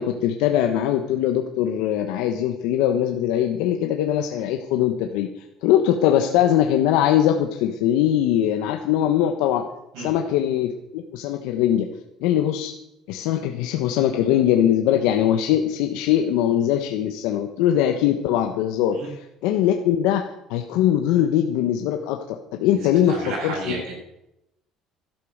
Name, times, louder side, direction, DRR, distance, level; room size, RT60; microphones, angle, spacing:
voice 1, 0.0-5.3 5.6-9.6 10.0-11.9 12.2-12.7 13.1-20.2 20.5-22.2 22.5-23.2 23.4-23.8, left 11 dB, 85° left, 4 dB, 1.1 m, -21 dB
voice 2, 22.7-23.9, right 2 dB, 85° right, -4 dB, 7.4 m, -32 dB
12.0 x 12.0 x 6.6 m, 0.88 s
cardioid pair, 120°, 0 cm